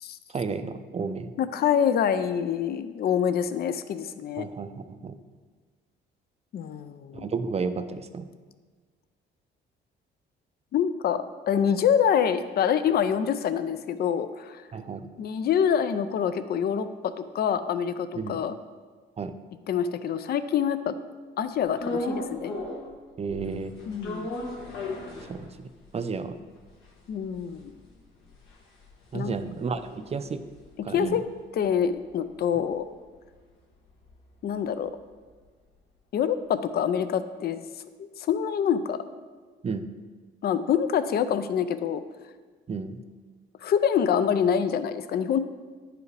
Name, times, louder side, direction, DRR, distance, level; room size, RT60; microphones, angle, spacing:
voice 1, 0.3-1.3 4.4-5.2 7.1-8.3 14.7-15.1 18.2-18.4 19.2-19.3 23.2-23.7 25.3-26.4 29.1-30.4 30.8-31.2 39.6-39.9 42.7-43.0, right 5 dB, 30° right, 9 dB, 0.5 m, -32 dB
voice 2, 1.4-4.5 6.5-7.3 10.7-14.6 15.2-18.5 19.7-21.0 21.4-22.5 23.9-24.3 27.1-27.7 29.1-29.4 30.9-31.2 31.5-32.8 34.4-34.9 36.1-37.6 38.0-39.0 40.4-42.0 43.6-45.4, left 8 dB, 50° left, 11 dB, 0.4 m, -26 dB
sound 1, 21.8-23.0 23.3-25.9 26.3-26.4 26.5-31.0 31.4-35.4, left 1 dB, 80° left, 1.5 m, -37 dB
10.0 x 4.8 x 3.3 m, 1.4 s
cardioid pair, 90°, 20 cm